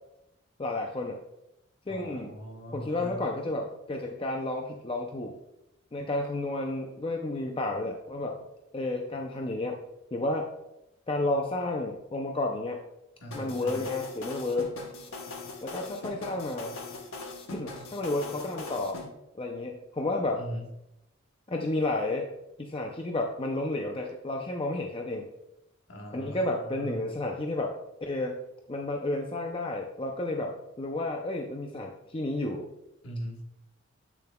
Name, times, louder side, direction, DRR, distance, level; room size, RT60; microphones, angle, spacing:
voice 1, 0.6-1.2 1.9-2.3 2.7-5.4 5.9-8.4 8.7-9.8 10.1-10.5 11.1-12.8 13.3-14.7 15.6-16.8 17.5-19.0 19.4-20.4 21.5-22.3 22.6-25.3 26.1-27.7 28.0-28.4 28.7-32.7, left 2 dB, 25° left, 2 dB, 0.5 m, -31 dB
voice 2, 1.9-3.2 13.2-13.9 20.4-20.7 25.9-27.2 33.0-33.4, equal, 60° left, 1 dB, 1.3 m, -40 dB
sound 1, 13.3-19.1, left 3 dB, 85° left, 1.1 m, -41 dB
8.4 x 6.6 x 2.3 m, 0.88 s
head